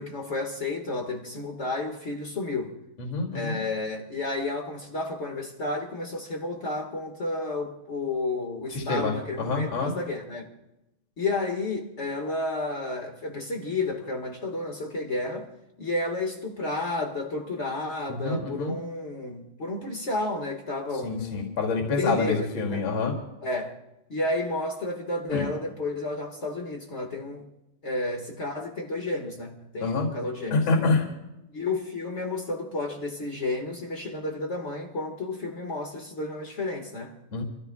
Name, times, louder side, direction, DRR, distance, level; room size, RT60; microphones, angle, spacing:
voice 1, 0.0-2.7 3.3-10.5 11.2-15.5 15.8-21.6 21.9-22.4 22.7-22.8 23.4-23.8 24.1-27.4 27.8-30.7 31.5-37.1, left 2 dB, 65° left, 0.7 m, -31 dB
voice 2, 3.0-3.6 8.7-9.1 9.4-9.9 18.1-18.7 21.0-23.1 25.3-25.4 29.8-30.1 30.5-31.0 37.3-37.4, left 3 dB, 35° left, 2.8 m, -26 dB
28.5 x 14.5 x 2.3 m
omnidirectional pair, 4.2 m